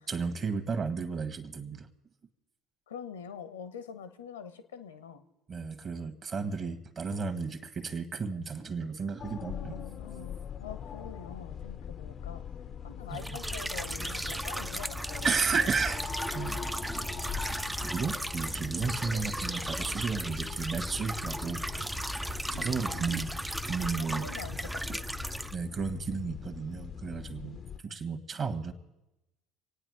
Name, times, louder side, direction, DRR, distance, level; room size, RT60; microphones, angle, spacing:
voice 1, 0.1-1.9 5.5-9.8 13.1-13.4 15.2-16.0 16.3-17.1 17.7-21.7 22.4-23.3 23.6-24.3 24.9-25.0 25.5-28.7, right 5 dB, 35° right, 11 dB, 1.5 m, -33 dB
voice 2, 2.9-5.2 9.4-12.4 12.8-15.3 15.5-15.7 19.1-19.3 22.5-23.2 24.0-25.1 27.4-28.0, left 7 dB, 80° left, 11 dB, 1.0 m, -45 dB
sound 1, 9.2-27.8, left 8 dB, 40° left, 0.6 m, -42 dB
sound 2, 13.1-25.6, right 1 dB, 5° right, 0.5 m, -36 dB
26.5 x 9.2 x 4.9 m, 0.97 s
figure-of-eight pair, 65°, 0 cm